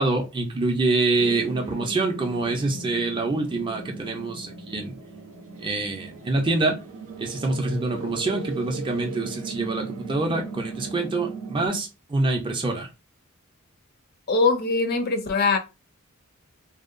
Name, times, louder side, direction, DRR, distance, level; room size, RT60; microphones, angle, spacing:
voice 1, 0.0-5.0 5.6-6.8 7.2-12.9, right 2 dB, 25° right, 0.4 m, -26 dB
sound 1, 1.2-11.7, right 4 dB, 80° right, 0.6 m, -38 dB
voice 2, 14.3-15.6, left 4 dB, 45° left, 0.5 m, -22 dB
2.7 x 2.2 x 2.5 m
head